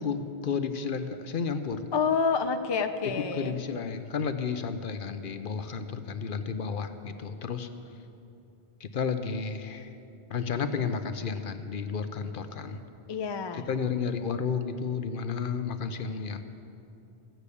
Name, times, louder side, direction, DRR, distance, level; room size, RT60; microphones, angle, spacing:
voice 1, 0.0-1.9 3.2-7.7 8.8-9.9 10.3-12.8 13.5-16.4, left 6 dB, 60° left, 9 dB, 0.8 m, -32 dB
voice 2, 1.9-3.6 13.1-13.7, left 5 dB, 35° left, 7 dB, 0.4 m, -28 dB
15.0 x 6.7 x 8.3 m, 2.7 s
omnidirectional pair, 1.1 m